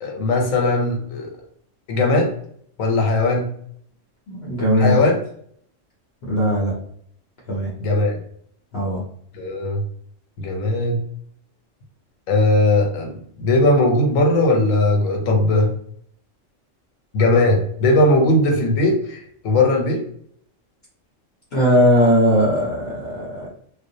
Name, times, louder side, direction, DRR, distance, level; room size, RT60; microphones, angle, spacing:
voice 1, 0.0-1.3 1.9-2.3 2.8-3.5 4.7-5.2 7.8-8.2 9.3-9.8 10.4-11.0 12.3-15.7 17.1-20.0, left 2 dB, 85° left, 2 dB, 1.1 m, -18 dB
voice 2, 4.3-4.9 6.2-6.7 7.5-7.7 8.7-9.0 21.5-23.5, equal, 60° left, -4 dB, 0.8 m, -18 dB
2.4 x 2.1 x 2.6 m, 0.63 s
omnidirectional pair, 1.3 m